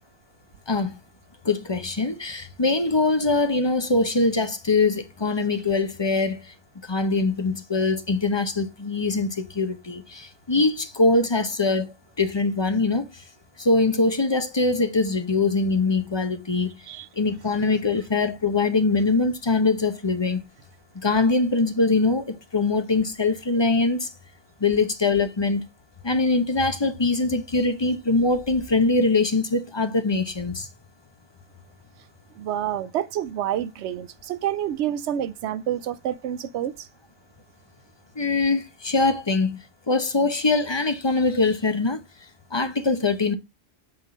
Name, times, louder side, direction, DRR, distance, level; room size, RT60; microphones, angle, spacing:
voice 1, 1.4-6.4 6.9-13.1 13.6-16.7 17.2-20.4 21.0-24.1 24.6-25.6 26.0-30.7 38.2-39.6 39.9-42.0 42.5-43.3, left 3 dB, 25° left, 0.8 m, -23 dB
voice 2, 32.4-36.9, right 11 dB, 85° right, 0.9 m, -28 dB
8.1 x 3.6 x 3.7 m
omnidirectional pair, 1.1 m